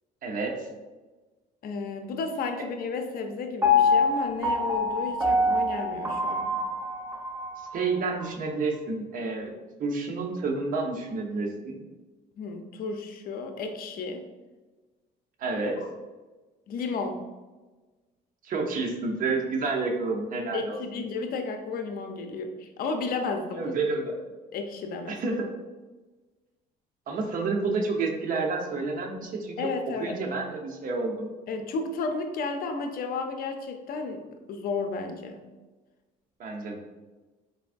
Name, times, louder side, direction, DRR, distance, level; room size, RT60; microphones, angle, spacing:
voice 1, 0.2-0.7 7.6-9.5 9.8-11.8 15.4-15.8 18.4-20.8 23.6-24.1 25.1-25.5 27.1-29.6 30.0-31.3 36.4-36.8, right 3 dB, 55° right, 1 dB, 0.8 m, -29 dB
voice 2, 1.6-6.5 12.4-14.2 16.7-17.2 20.5-23.7 24.5-25.2 29.6-30.2 31.5-35.4, left 4 dB, 60° left, 5 dB, 0.6 m, -33 dB
Piano, 3.6-7.7 8.2-8.3, left 3 dB, 15° right, 0.8 m, -25 dB
4.6 x 3.4 x 2.5 m, 1.2 s
cardioid pair, 110°, 17 cm